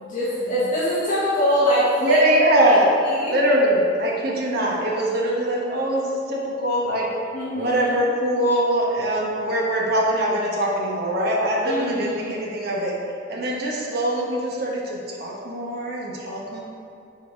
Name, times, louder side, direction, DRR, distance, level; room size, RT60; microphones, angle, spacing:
voice 1, 0.0-2.2 2.7-2.8 3.0-3.4 7.3-8.0 11.6-12.3, equal, 45° left, -9 dB, 1.8 m, -23 dB
voice 2, 2.0-2.8 3.2-7.1 7.5-12.9 13.3-16.6, right 1 dB, 55° right, -3 dB, 1.3 m, -22 dB
7.4 x 4.4 x 5.2 m, 2.5 s
head